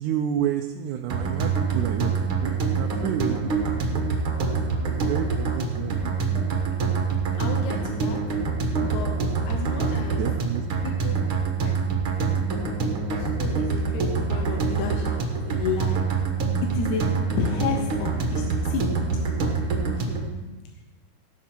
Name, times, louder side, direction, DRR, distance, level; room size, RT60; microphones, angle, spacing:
voice 1, 0.0-3.9 4.8-6.5 10.0-10.7, right 10 dB, 85° right, 4 dB, 2.1 m, -30 dB
sound 1, 1.1-20.3, right 4 dB, 50° right, 1.9 m, -25 dB
voice 2, 7.3-8.2 8.8-9.2 9.5-10.3 10.8-11.2 11.6-11.7 13.2-16.0 16.7-17.0 17.4-18.9 19.1-19.2 20.0-20.2, left 5 dB, 80° left, 2 dB, 2.4 m, -32 dB
16.5 x 7.0 x 4.4 m, 1.2 s
omnidirectional pair, 3.4 m